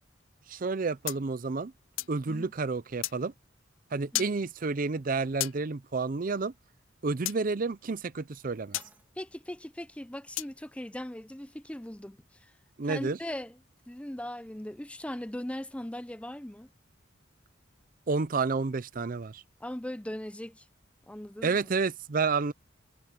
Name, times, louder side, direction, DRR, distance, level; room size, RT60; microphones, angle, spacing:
voice 1, 0.5-1.7 2.1-3.3 3.9-6.5 7.0-8.8 12.8-13.2 18.1-19.4 21.4-22.5, right 4 dB, 45° right, 0.5 m, -30 dB
sound 1, 1.1-2.2 3.0-3.2 4.1-4.4 5.4-5.6 7.3-7.4 8.7-8.9 10.4-10.6, left 17 dB, 85° left, 0.5 m, -33 dB
sound 2, 8.0-10.0, right 2 dB, 10° right, 2.7 m, -59 dB
voice 2, 9.2-12.5 12.8-13.6 13.9-16.7 19.6-20.7 21.1-21.6, left 1 dB, 5° left, 0.6 m, -39 dB
head